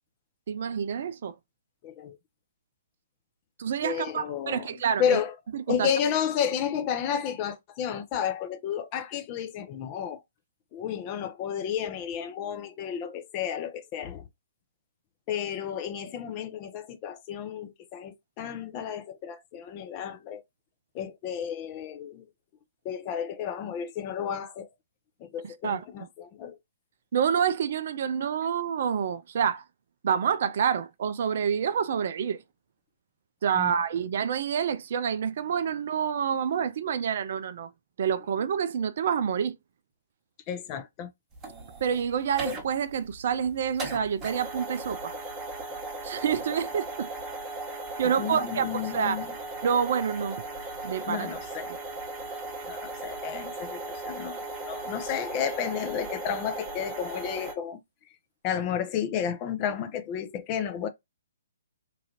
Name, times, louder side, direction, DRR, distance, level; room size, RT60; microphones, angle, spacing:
voice 1, 0.5-1.4 3.6-5.2 5.5-5.9 25.4-25.8 27.1-29.7 30.0-32.4 33.4-37.7 38.0-39.6 41.8-45.2 46.0-47.1 48.0-49.2 49.6-50.4 50.8-51.3, right 7 dB, 50° right, 0.3 m, -28 dB
voice 2, 1.8-2.2 3.8-4.7 5.0-5.3 5.7-10.2 10.7-14.3 15.3-20.4 20.9-22.3 22.8-24.7 25.2-26.6 33.6-33.7 40.5-41.1 48.2-49.3 51.1-51.7 52.7-57.8 58.4-60.9, left 8 dB, 30° left, 0.5 m, -32 dB
sound 1, 41.3-57.5, right 2 dB, 20° right, 1.0 m, -37 dB
3.1 x 2.4 x 2.8 m
figure-of-eight pair, 130°, 0 cm